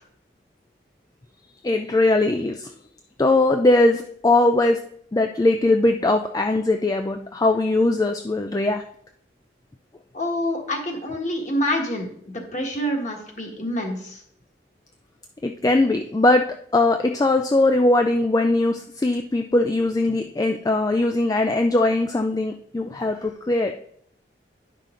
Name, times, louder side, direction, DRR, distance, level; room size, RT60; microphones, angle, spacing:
voice 1, 1.6-2.7 3.2-8.9 15.4-23.8, left 2 dB, 20° left, 0.3 m, -20 dB
voice 2, 10.1-14.2, equal, 40° left, 1.5 m, -27 dB
10.5 x 5.8 x 3.7 m
head